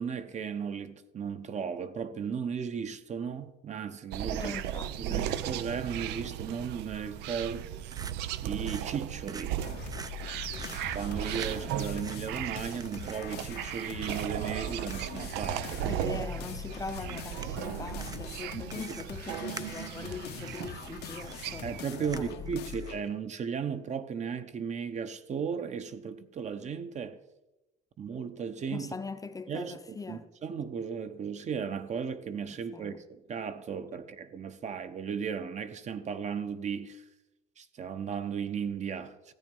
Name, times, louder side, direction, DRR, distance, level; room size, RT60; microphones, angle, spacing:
voice 1, 0.0-4.6 5.0-7.7 8.4-9.5 10.9-15.9 18.5-18.6 21.6-27.2 28.0-28.9 29.5-37.0 37.6-39.3, right 6 dB, 45° right, 1.0 m, -36 dB
sound 1, 4.1-21.8, right 12 dB, 90° right, 0.6 m, -36 dB
voice 2, 4.3-5.3 15.8-21.6 22.0-22.8 28.7-30.2 32.7-33.0, left 4 dB, 20° left, 0.7 m, -41 dB
sound 2, 7.5-23.1, right 5 dB, 20° right, 0.5 m, -50 dB
sound 3, 9.6-23.1, left 11 dB, 75° left, 0.9 m, -43 dB
14.0 x 8.8 x 5.5 m
cardioid pair, 110°, 17 cm